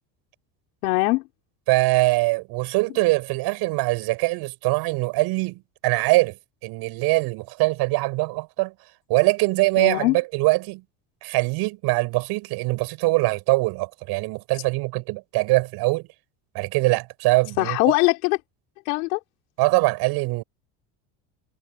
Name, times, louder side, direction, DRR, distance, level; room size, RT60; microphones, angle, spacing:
voice 1, 0.8-1.2 9.8-10.2 17.6-18.4 18.8-19.2, left 23 dB, 85° left, 5.0 m, -21 dB
voice 2, 1.7-6.4 6.6-8.7 9.1-10.8 11.2-16.1 16.5-17.9 19.6-20.4, right 23 dB, 65° right, 6.5 m, -22 dB
supercardioid pair, 125°, 41 cm